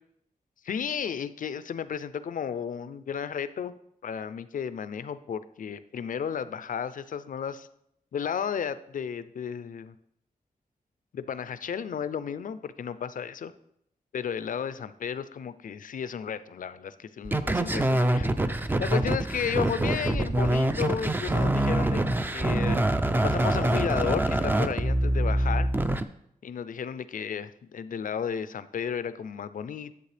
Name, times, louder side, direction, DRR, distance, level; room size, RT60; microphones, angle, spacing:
voice 1, 0.6-3.7 4.0-7.7 8.1-9.9 11.1-13.5 14.1-18.3 18.8-22.0 22.3-22.8 23.2-25.7 26.4-29.9, left 7 dB, 65° left, 14 dB, 0.4 m, -33 dB
sound 1, 17.2-26.0, right 1 dB, 15° right, 0.4 m, -25 dB
10.5 x 7.8 x 3.3 m, 0.74 s
wide cardioid pair, 160°, 15 cm